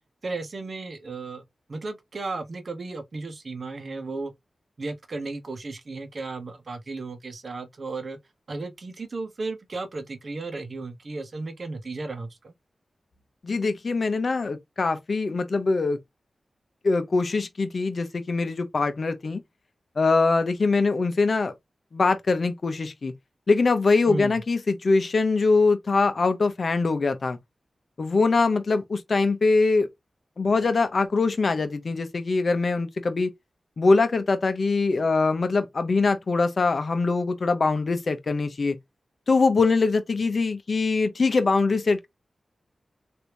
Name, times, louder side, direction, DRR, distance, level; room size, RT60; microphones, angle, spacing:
voice 1, 0.2-1.4 1.7-4.3 4.8-8.2 8.5-12.5 24.1-24.4, right 3 dB, 60° right, 0.9 m, -34 dB
voice 2, 13.4-16.0 16.8-19.4 20.0-21.5 21.9-23.1 23.5-27.4 28.0-29.9 30.4-33.3 33.8-38.8 39.3-42.1, left 3 dB, 60° left, 0.7 m, -23 dB
3.3 x 2.6 x 2.9 m
cardioid pair, 50°, 0 cm